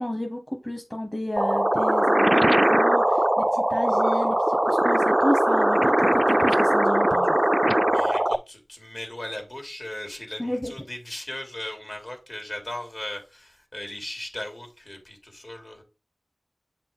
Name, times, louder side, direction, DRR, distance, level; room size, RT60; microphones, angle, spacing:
voice 1, 0.0-7.4 10.4-10.7, left 1 dB, 20° left, 1.1 m, -31 dB
sound 1, 1.4-8.4, right 1 dB, 20° right, 0.3 m, -20 dB
voice 2, 7.9-15.8, left 1 dB, 55° left, 2.4 m, -37 dB
8.0 x 4.9 x 3.5 m
wide cardioid pair, 50°, 0 cm